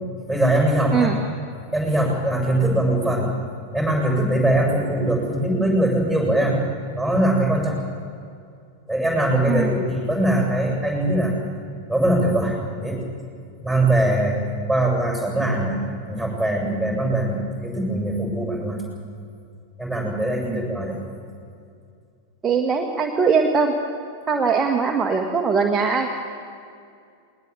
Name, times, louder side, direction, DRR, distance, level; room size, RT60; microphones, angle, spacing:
voice 1, 0.3-1.1 1.7-3.3 3.7-6.7 6.9-7.8 8.9-11.3 11.9-13.0 13.6-15.8 16.1-18.8 19.8-21.0, right 1 dB, 5° left, 0 dB, 7.4 m, -21 dB
voice 2, 22.4-23.7 24.3-26.1, right 5 dB, 20° right, 2 dB, 1.6 m, -21 dB
20.5 x 20.0 x 8.4 m, 2.4 s
figure-of-eight pair, 90°, 0 cm